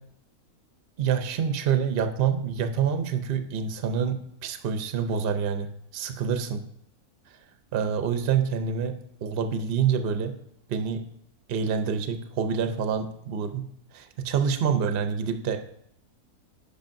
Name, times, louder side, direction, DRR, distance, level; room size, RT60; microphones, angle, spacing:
voice 1, 1.0-5.7 5.9-6.6 7.7-8.9 9.2-10.3 10.7-11.0 11.5-13.6 13.9-15.6, right 7 dB, 55° right, 7 dB, 0.6 m, -27 dB
10.5 x 5.0 x 2.6 m, 0.73 s
omnidirectional pair, 1.6 m